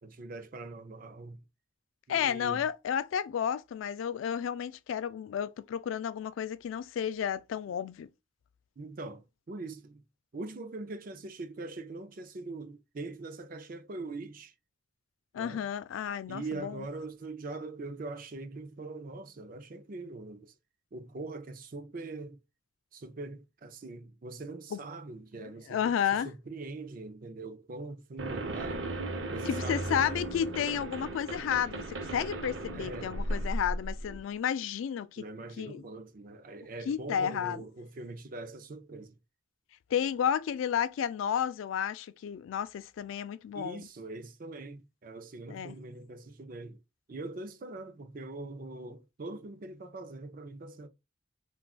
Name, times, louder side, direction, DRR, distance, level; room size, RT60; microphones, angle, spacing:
voice 1, 0.0-1.4 2.1-2.6 8.8-10.0 10.3-14.5 15.3-15.6 16.3-20.5 20.9-22.4 22.9-28.9 29.3-30.1 32.7-33.2 35.2-39.1 43.5-46.8 47.1-50.9, right 3 dB, 45° right, 0.5 m, -42 dB
voice 2, 2.1-8.1 15.3-16.8 24.7-24.8 25.7-26.3 29.5-35.2 35.6-35.8 36.9-37.6 39.9-43.8 45.5-45.8, left 8 dB, 90° left, 0.3 m, -32 dB
sound 1, 28.2-34.2, right 1 dB, 70° right, 0.8 m, -36 dB
3.6 x 2.3 x 2.3 m
head